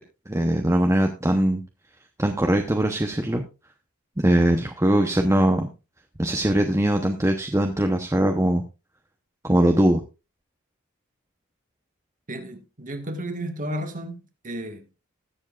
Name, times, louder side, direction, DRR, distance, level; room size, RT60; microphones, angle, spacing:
voice 1, 0.3-1.6 2.2-3.4 4.2-5.7 6.2-8.6 9.4-10.0, right 1 dB, 15° right, 0.8 m, -21 dB
voice 2, 12.3-14.2 14.4-14.8, right 1 dB, 40° right, 1.6 m, -32 dB
20.5 x 7.2 x 2.4 m
head